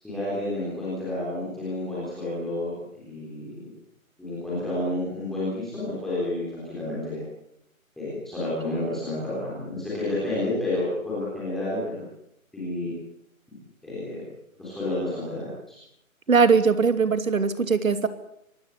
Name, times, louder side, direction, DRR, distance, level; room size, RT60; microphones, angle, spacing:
voice 1, 0.0-3.7 4.2-7.2 8.0-12.0 12.5-12.9 13.8-14.2 14.6-15.8, left 1 dB, ahead, -9 dB, 3.6 m, -30 dB
voice 2, 16.3-18.1, right 5 dB, 70° right, 11 dB, 2.9 m, -20 dB
25.0 x 19.5 x 8.4 m, 0.77 s
hypercardioid pair, 180°, 42 cm